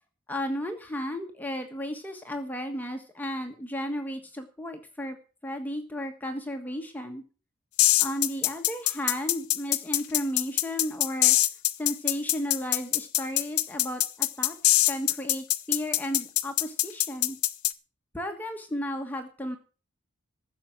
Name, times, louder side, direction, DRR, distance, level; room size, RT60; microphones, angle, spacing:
voice 1, 0.3-5.2 5.4-7.2 8.0-11.4 11.8-17.4 18.1-19.6, equal, 10° left, 3 dB, 1.4 m, -34 dB
sound 1, 7.8-17.7, left 16 dB, 80° left, 0.9 m, -23 dB
15.0 x 7.0 x 7.7 m, 0.37 s
head